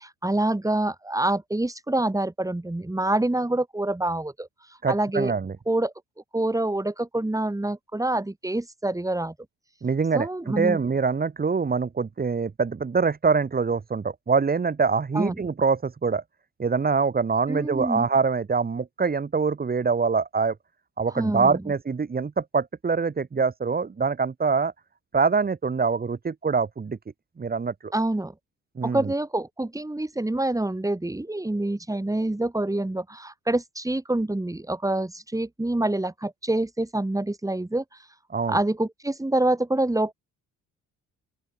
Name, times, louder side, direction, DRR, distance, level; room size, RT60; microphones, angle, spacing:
voice 1, 0.0-4.5 4.9-5.3 5.7-5.9 6.3-9.3 10.1-10.8 15.1-15.3 17.5-18.1 21.2-21.6 27.9-28.3 28.8-37.8 38.5-40.1, right 1 dB, 10° right, 7.8 m, -26 dB
voice 2, 4.8-5.6 9.8-16.2 16.6-20.6 21.0-24.7 25.1-27.0 27.4-27.9 28.8-29.1 38.3-38.6, right 5 dB, 30° right, 2.0 m, -24 dB
open air
cardioid pair, 90°, 30 cm